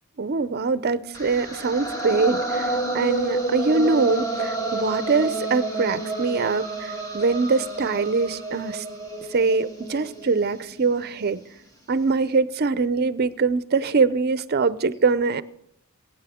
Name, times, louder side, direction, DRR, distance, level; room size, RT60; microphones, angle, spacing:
voice 1, 0.2-8.8 9.3-11.4 11.9-15.4, right 4 dB, 45° right, 0.5 m, -23 dB
sound 1, 1.1-11.2, right 2 dB, 15° left, 1.6 m, -30 dB
23.0 x 9.1 x 3.6 m
head